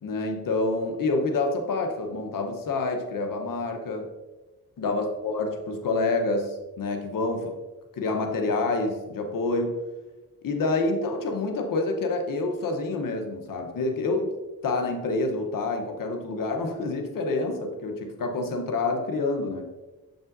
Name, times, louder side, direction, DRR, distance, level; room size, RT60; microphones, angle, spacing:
voice 1, 0.0-4.1 4.8-7.5 7.9-9.8 10.4-14.3 14.6-19.6, left 3 dB, 65° left, 4 dB, 1.0 m, -27 dB
6.9 x 5.3 x 2.6 m, 1.2 s
cardioid pair, 65°, 35 cm